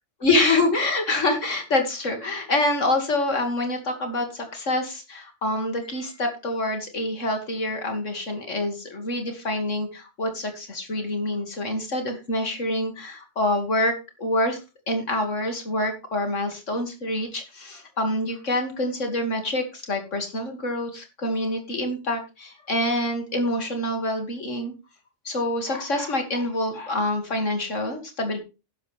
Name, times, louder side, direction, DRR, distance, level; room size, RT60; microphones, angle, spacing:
voice 1, 0.2-14.6 14.9-24.7 25.2-28.4, left 1 dB, 90° left, 5 dB, 3.0 m, -26 dB
11.5 x 11.0 x 3.6 m, 0.29 s
omnidirectional pair, 1.2 m